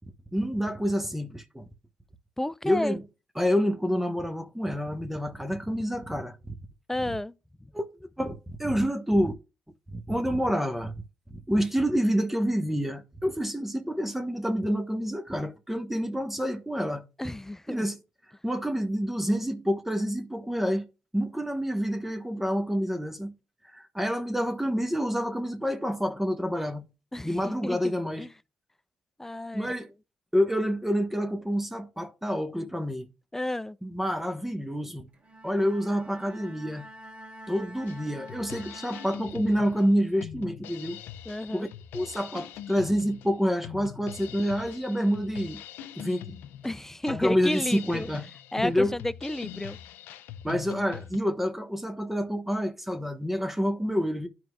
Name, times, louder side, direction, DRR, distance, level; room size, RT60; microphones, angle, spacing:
voice 1, 0.3-1.7 2.6-3.0 3.4-6.4 7.7-7.9 8.2-9.3 9.9-10.9 11.3-17.0 17.7-18.0 18.4-20.9 21.1-23.3 23.7-26.9 27.2-28.3 29.5-29.9 30.3-33.1 33.8-35.1 35.4-36.9 37.5-41.0 41.5-41.7 41.9-45.6 45.9-46.4 47.1-48.2 48.6-48.9 50.4-54.3, equal, 5° right, 1.2 m, -28 dB
voice 2, 2.4-3.0 6.9-7.3 17.2-17.8 27.1-28.3 29.2-29.7 33.3-33.8 41.3-41.7 46.6-48.1 48.5-49.8, left 1 dB, 10° left, 0.5 m, -32 dB
Bowed string instrument, 35.1-39.8, right 1 dB, 45° right, 3.1 m, -47 dB
Drum kit, 37.9-51.2, left 10 dB, 80° left, 0.4 m, -43 dB
12.5 x 4.7 x 2.3 m
supercardioid pair, 50°, 3 cm